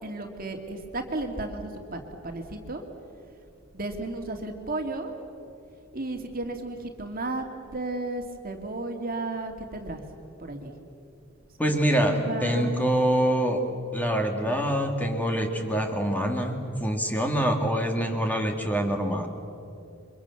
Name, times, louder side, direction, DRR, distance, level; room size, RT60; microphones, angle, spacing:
voice 1, 0.0-2.8 3.7-5.1 5.9-7.4 7.7-10.0 10.4-10.7 11.7-12.7, right 2 dB, 45° right, 4 dB, 2.5 m, -34 dB
voice 2, 11.6-13.6 13.9-19.3, right 1 dB, 10° left, 3 dB, 2.2 m, -25 dB
29.0 x 24.0 x 7.2 m, 2.6 s
head